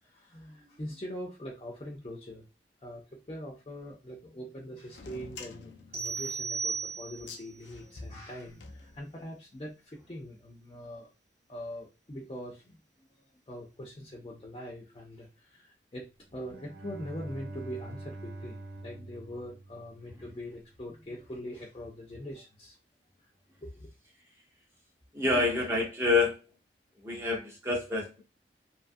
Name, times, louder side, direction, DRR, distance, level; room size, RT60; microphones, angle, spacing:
voice 1, 0.0-2.4 2.8-11.1 11.5-22.8 23.2-23.3 23.6-23.9, equal, 30° left, -1 dB, 0.5 m, -43 dB
sound 1, 4.9-9.4, left 3 dB, 80° left, 0.5 m, -48 dB
sound 2, 5.9-7.5, right 5 dB, 35° right, 1.0 m, -35 dB
Bowed string instrument, 16.3-20.4, right 2 dB, 80° right, 0.7 m, -44 dB
voice 2, 25.1-26.4 27.0-28.2, left 3 dB, 15° right, -1 dB, 0.6 m, -27 dB
2.7 x 2.4 x 2.6 m, 0.28 s
head